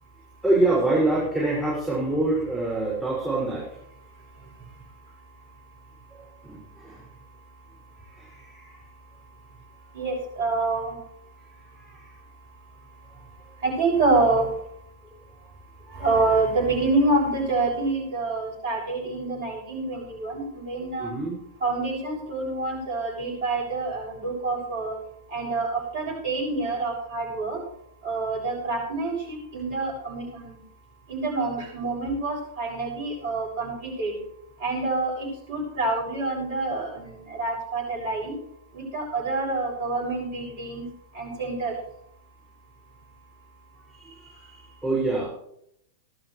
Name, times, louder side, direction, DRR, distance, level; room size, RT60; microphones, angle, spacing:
voice 1, 0.4-3.7 6.4-7.0 8.0-8.8 11.7-12.1 15.8-16.3 21.0-21.4 43.9-45.3, right 2 dB, ahead, -8 dB, 5.9 m, -26 dB
voice 2, 9.9-10.9 13.6-14.5 16.0-21.1 21.6-25.0 25.3-27.6 28.0-30.6 31.1-34.2 34.6-38.3 38.7-40.8 41.1-41.7, right 3 dB, 55° right, -2 dB, 6.7 m, -27 dB
19.0 x 12.0 x 3.3 m, 0.74 s
figure-of-eight pair, 100°, 0 cm